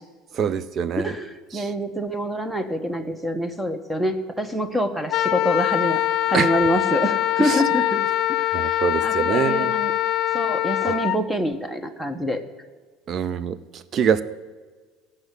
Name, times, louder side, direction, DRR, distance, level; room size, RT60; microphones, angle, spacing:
voice 1, 0.3-1.1 1.5-1.7 6.3-6.5 7.4-7.6 8.5-9.7 13.1-14.2, right 7 dB, 40° right, 15 dB, 0.6 m, -24 dB
voice 2, 1.0-6.0 6.3-8.0 8.4-9.9 10.3-12.4, equal, 5° right, 9 dB, 1.1 m, -26 dB
Wind instrument woodwind instrument, 5.1-11.2, left 13 dB, 50° left, 0.7 m, -23 dB
16.0 x 5.7 x 8.2 m, 1.4 s
supercardioid pair, 115°, 0 cm